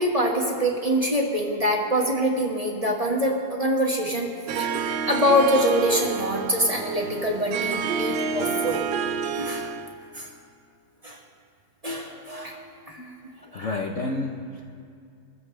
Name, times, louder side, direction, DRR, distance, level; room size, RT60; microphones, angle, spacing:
voice 1, 0.0-4.3 4.6-8.8 9.3-9.7 10.1-10.3 11.0-11.2 11.8-13.0 13.5-13.8, equal, 20° right, -2 dB, 1.7 m, -25 dB
Harp, 4.5-9.9, right 6 dB, 85° right, 1.5 m, -29 dB
voice 2, 13.5-14.7, left 2 dB, 50° left, 0 dB, 1.1 m, -31 dB
26.0 x 15.0 x 3.3 m, 2.4 s
omnidirectional pair, 2.0 m